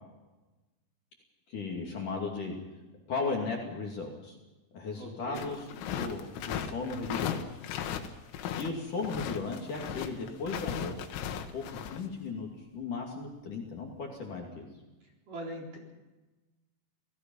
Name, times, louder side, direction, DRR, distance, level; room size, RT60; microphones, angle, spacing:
voice 1, 1.5-2.5 3.1-4.4 4.7-5.6 5.9-7.4 8.6-11.1 11.5-14.7, left 4 dB, 45° left, 0 dB, 3.6 m, -36 dB
voice 2, 4.9-5.5 15.3-15.8, right 1 dB, 45° right, -1 dB, 5.3 m, -41 dB
sound 1, 5.4-8.7 9.0-12.0, left 9 dB, 85° left, 4.1 m, -36 dB
28.5 x 18.5 x 5.6 m, 1.1 s
omnidirectional pair, 5.7 m